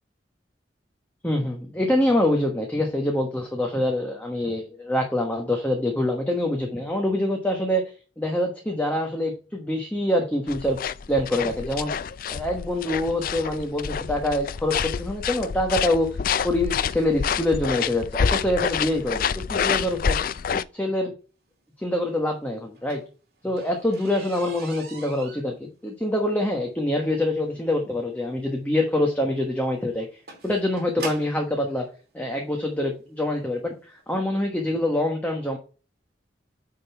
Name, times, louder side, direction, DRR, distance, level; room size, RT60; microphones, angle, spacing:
voice 1, 1.2-10.8 11.1-11.9 12.3-16.1 16.4-20.2 20.5-21.1 21.8-23.0 23.4-30.1 30.4-31.9 32.1-35.6, left 1 dB, 10° left, 1 dB, 1.2 m, -25 dB
sound 1, 10.5-20.6, left 7 dB, 50° left, 0.4 m, -28 dB
sound 2, 22.6-31.5 32.4-32.5 33.1-33.3 33.6-33.7 34.0-34.1, right 4 dB, 60° right, 2.7 m, -42 dB
9.0 x 4.0 x 4.4 m, 0.35 s
head